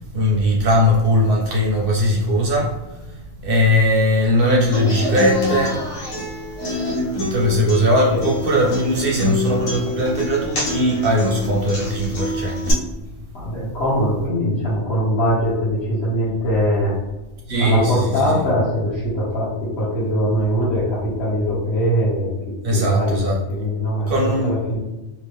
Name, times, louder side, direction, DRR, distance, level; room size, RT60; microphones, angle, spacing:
voice 1, 0.1-5.8 7.2-12.7 17.5-18.4 22.6-23.4 24.1-24.5, equal, 55° right, -2 dB, 0.7 m, -19 dB
Human voice / Acoustic guitar, 4.7-12.7, left 1 dB, 90° left, 1.2 m, -26 dB
voice 2, 13.3-16.9 17.6-22.3 22.7-24.8, equal, 55° left, -9 dB, 1.1 m, -22 dB
2.8 x 2.4 x 3.4 m, 1.0 s
omnidirectional pair, 1.4 m